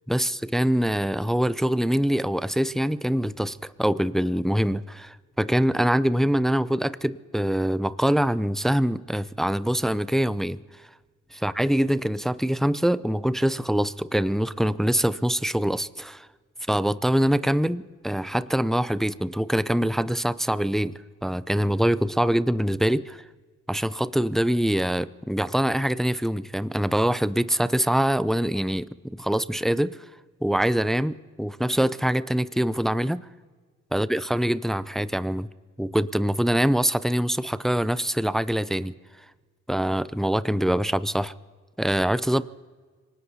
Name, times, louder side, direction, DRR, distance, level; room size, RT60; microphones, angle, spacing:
voice 1, 0.1-10.6 11.3-16.2 16.7-23.2 23.7-30.0 30.4-33.2 33.9-35.5 35.8-38.9 39.7-41.3 41.8-42.4, equal, ahead, 16 dB, 0.4 m, -24 dB
27.0 x 18.5 x 2.8 m, 1.5 s
supercardioid pair, 70°, 31 cm